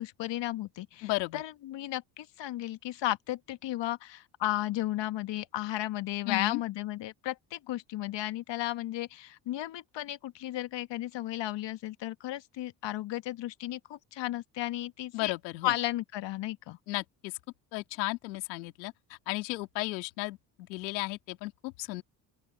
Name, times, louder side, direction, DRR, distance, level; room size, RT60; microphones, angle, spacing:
voice 1, 0.0-15.3 15.6-16.8, left 15 dB, 55° left, 1.5 m, -34 dB
voice 2, 1.0-1.4 6.3-6.6 15.1-15.7 16.9-17.3 17.7-22.0, left 22 dB, 85° left, 2.7 m, -34 dB
open air
hypercardioid pair, 65°, 50 cm